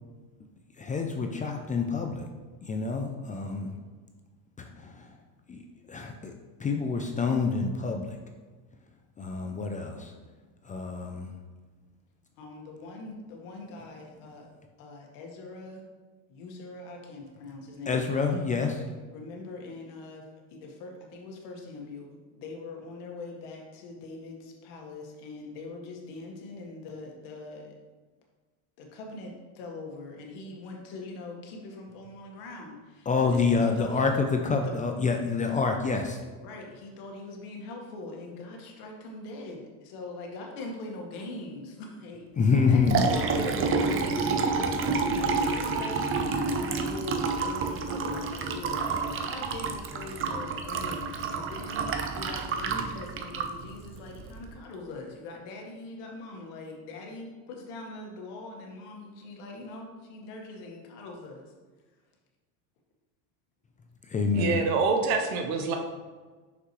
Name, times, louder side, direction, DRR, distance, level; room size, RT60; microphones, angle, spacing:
voice 1, 0.7-2.3 2.6-3.7 4.6-5.2 5.5-6.3 6.6-8.2 9.2-10.2 10.6-11.4 17.9-18.8 33.1-36.2 42.4-43.1 64.0-64.6, left 4 dB, 20° left, 3 dB, 0.4 m, -27 dB
voice 2, 12.4-14.5 14.8-15.8 16.3-18.0 19.1-27.7 28.8-34.1 34.6-34.7 36.4-42.3 42.7-61.4, left 3 dB, 70° left, 1 dB, 1.6 m, -42 dB
Liquid, 42.5-54.5, right 4 dB, 30° right, 0.6 m, -29 dB
voice 3, 43.3-43.7 64.3-65.8, right 4 dB, 80° right, 4 dB, 1.0 m, -26 dB
6.0 x 5.6 x 3.1 m, 1.4 s
supercardioid pair, 120°, 43 cm